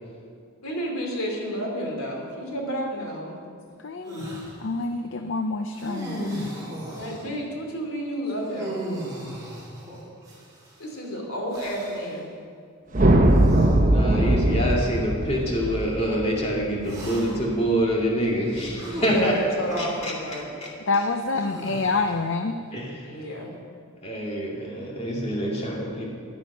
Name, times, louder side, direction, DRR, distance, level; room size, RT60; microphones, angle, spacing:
voice 1, 0.6-3.4 6.9-8.9 10.8-12.3 18.7-20.5 23.0-23.5, equal, 85° left, 1 dB, 2.9 m, -31 dB
voice 2, 3.8-6.5 6.9-7.0 20.9-22.5, left 3 dB, 60° left, 7 dB, 0.6 m, -27 dB
sound 1, 4.1-4.5 5.7-7.3 8.4-10.7 11.5-12.1 13.2-13.7 14.6-14.7 16.8-17.5 18.8-19.8 21.4-22.2, right 1 dB, 15° right, 4.2 m, -36 dB
sound 2, 12.9-17.3, right 1 dB, 35° right, 1.1 m, -20 dB
voice 3, 13.8-19.3 19.8-20.7 22.7-22.9 24.0-26.1, equal, 30° left, -2 dB, 2.3 m, -26 dB
14.5 x 10.5 x 5.6 m, 2.3 s
head